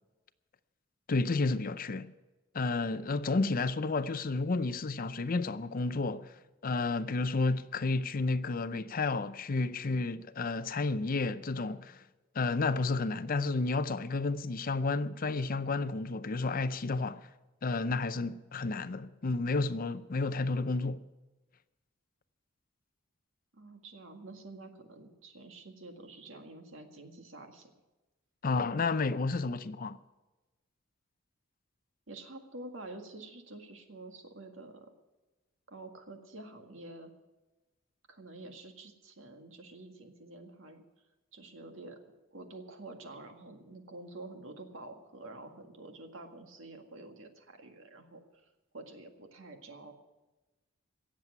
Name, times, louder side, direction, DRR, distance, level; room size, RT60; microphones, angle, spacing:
voice 1, 1.1-2.1 2.5-6.3 6.6-12.0 12.3-17.3 17.6-21.0 28.4-30.0, left 3 dB, 45° left, 0.6 m, -31 dB
voice 2, 23.5-27.7 32.1-34.9 35.7-37.1 38.1-40.8 41.3-42.0 42.3-48.2 48.7-49.9, right 2 dB, 70° right, 1.9 m, -48 dB
17.5 x 7.5 x 9.5 m
head